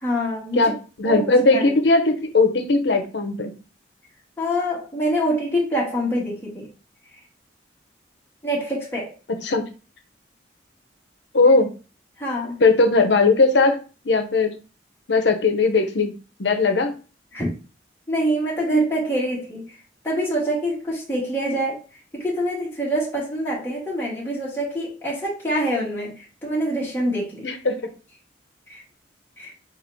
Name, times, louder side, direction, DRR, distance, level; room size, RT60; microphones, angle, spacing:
voice 1, 0.0-0.7 1.0-1.7 4.4-6.7 8.4-9.1 12.2-12.6 17.3-17.5 18.1-19.7 20.0-21.8 22.1-27.5 28.7-28.8 29.4-29.5, equal, 10° left, -5 dB, 1.4 m, -25 dB
voice 2, 0.5-3.5 9.4-9.6 11.3-11.7 12.6-13.8 14.0-14.5 15.1-16.1 16.4-16.9 27.4-27.8, left 3 dB, 70° left, 7 dB, 0.8 m, -18 dB
4.1 x 2.6 x 4.5 m, 0.34 s
head